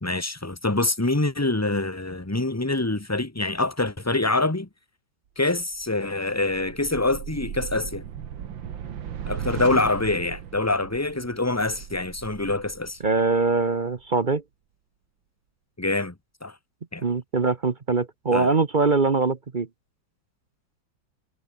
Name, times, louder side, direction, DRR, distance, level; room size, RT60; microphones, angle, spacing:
voice 1, 0.0-4.7 5.4-8.0 9.3-13.0 15.8-16.1 16.4-16.5 16.9-17.0 18.3-18.5, left 2 dB, 10° left, 1.6 m, -25 dB
sound 1, 5.6-14.0, right 9 dB, 85° right, 2.2 m, -37 dB
voice 2, 13.0-14.4 17.0-19.7, right 3 dB, 35° right, 0.9 m, -22 dB
omnidirectional pair, 2.1 m